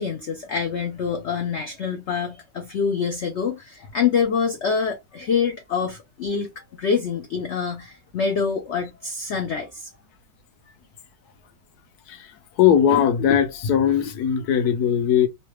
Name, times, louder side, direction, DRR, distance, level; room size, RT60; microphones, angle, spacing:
voice 1, 0.0-9.9, left 6 dB, 85° left, 0.6 m, -26 dB
voice 2, 12.1-15.3, left 9 dB, 70° left, 1.1 m, -20 dB
3.2 x 2.2 x 3.0 m
omnidirectional pair, 2.0 m